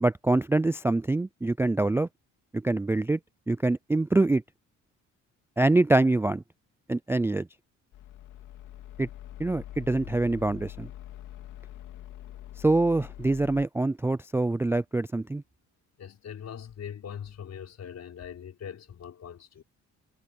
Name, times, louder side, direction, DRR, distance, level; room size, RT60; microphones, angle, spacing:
voice 1, 0.0-2.1 2.5-3.2 3.5-4.4 5.6-6.4 6.9-7.5 9.0-9.1 9.4-10.9 12.6-15.4, right 2 dB, 10° right, 0.3 m, -25 dB
sound 1, 7.9-13.7, left 12 dB, 85° left, 3.1 m, -44 dB
voice 2, 16.0-19.6, left 8 dB, 60° left, 5.7 m, -41 dB
cardioid pair, 90°, 30 cm